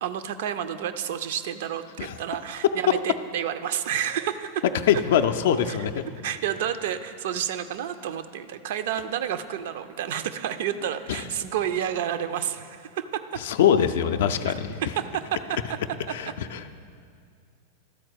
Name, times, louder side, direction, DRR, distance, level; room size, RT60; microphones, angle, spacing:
voice 1, 0.0-4.6 5.7-5.8 6.2-13.4 14.8-15.6 16.1-16.2, right 9 dB, 55° right, 10 dB, 0.4 m, -30 dB
voice 2, 4.9-6.0 11.1-11.2 13.4-14.8 16.1-16.7, left 9 dB, 55° left, 9 dB, 0.4 m, -23 dB
12.5 x 4.4 x 6.3 m, 2.2 s
figure-of-eight pair, 90°, 0 cm